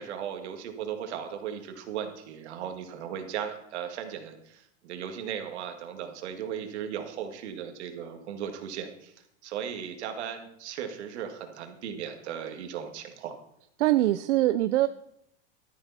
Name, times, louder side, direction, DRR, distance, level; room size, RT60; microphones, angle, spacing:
voice 1, 0.0-9.1 9.4-13.4, right 8 dB, 70° right, 6 dB, 2.0 m, -37 dB
voice 2, 13.8-14.9, right 15 dB, 85° right, 13 dB, 0.6 m, -23 dB
12.5 x 11.5 x 4.1 m, 0.75 s
supercardioid pair, 165°, 35 cm